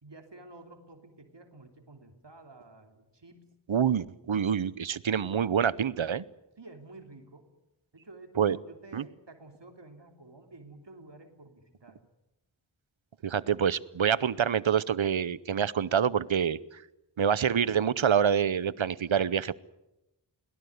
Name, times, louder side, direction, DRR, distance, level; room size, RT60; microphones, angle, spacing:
voice 1, 0.0-3.5 6.6-7.5 7.9-12.0, right 2 dB, 65° right, 5 dB, 3.2 m, -51 dB
voice 2, 3.7-6.2 8.4-8.6 8.9-9.0 13.2-16.6 17.2-19.5, right 8 dB, 85° right, 20 dB, 0.8 m, -26 dB
22.0 x 18.5 x 9.5 m, 0.92 s
wide cardioid pair, 45°, 46 cm